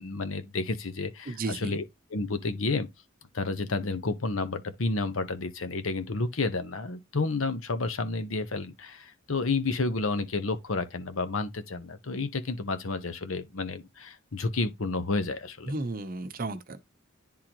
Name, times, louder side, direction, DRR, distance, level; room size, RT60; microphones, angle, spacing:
voice 1, 0.0-1.8 2.1-2.9 3.3-15.7, left 3 dB, 85° left, 1.0 m, -30 dB
voice 2, 1.3-1.7 15.7-16.8, right 2 dB, 45° right, 0.8 m, -33 dB
10.5 x 3.8 x 3.0 m
head